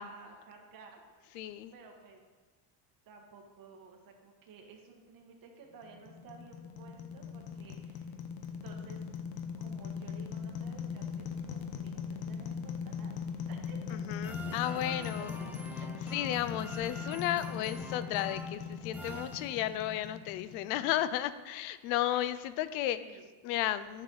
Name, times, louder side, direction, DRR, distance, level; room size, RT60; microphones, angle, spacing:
voice 1, 0.0-1.4 1.7-2.2 3.0-8.1 8.5-9.0 9.6-13.2 13.5-14.0 14.5-15.5 23.0-23.3, right 5 dB, 45° right, 1 dB, 1.5 m, -54 dB
voice 2, 1.3-1.7 13.9-15.3 16.1-23.0 23.4-24.0, left 13 dB, 90° left, 15 dB, 0.6 m, -33 dB
sound 1, 5.8-21.0, left 6 dB, 50° left, 0.9 m, -40 dB
sound 2, 14.2-20.0, right 1 dB, 5° right, 0.4 m, -47 dB
10.0 x 6.3 x 4.0 m, 1.4 s
cardioid pair, 140°, 47 cm